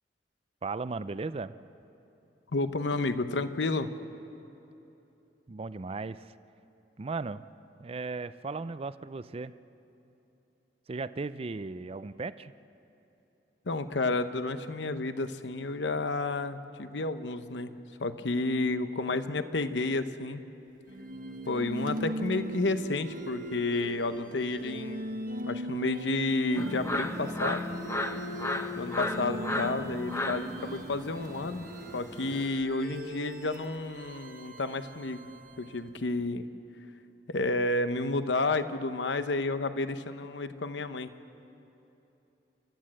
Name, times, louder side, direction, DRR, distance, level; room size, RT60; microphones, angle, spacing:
voice 1, 0.6-1.5 5.5-6.3 7.0-7.5 7.8-9.5 10.9-12.5, right 3 dB, 35° right, 14 dB, 0.5 m, -36 dB
voice 2, 2.5-3.9 13.7-17.7 18.0-20.5 21.5-25.0 25.4-27.7 28.8-31.7 31.9-35.3 35.6-36.4 37.3-41.1, left 2 dB, 85° left, 10 dB, 0.8 m, -31 dB
sound 1, 20.9-36.0, equal, 50° right, 1.1 m, -40 dB
sound 2, 26.5-32.5, left 1 dB, 15° left, 0.8 m, -35 dB
29.0 x 13.0 x 7.6 m, 3.0 s
head